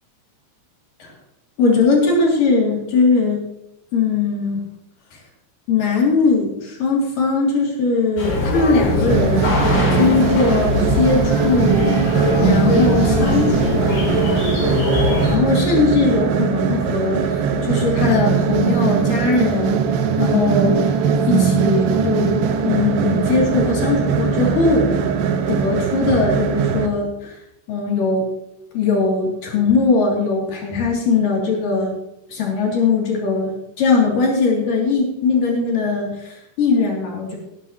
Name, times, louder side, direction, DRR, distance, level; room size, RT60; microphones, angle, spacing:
voice 1, 1.6-3.4 3.9-4.6 5.7-11.9 12.4-14.2 15.3-19.8 20.2-20.8 21.3-22.4 22.6-24.9 25.5-27.4 27.7-28.3 28.7-31.9 32.3-37.4, left 4 dB, 50° left, -2 dB, 4.2 m, -20 dB
sound 1, 8.2-15.4, left 2 dB, 85° left, 6.0 m, -21 dB
sound 2, 9.1-26.9, right 6 dB, 80° right, 3.2 m, -20 dB
19.0 x 10.5 x 3.0 m, 0.86 s
omnidirectional pair, 5.0 m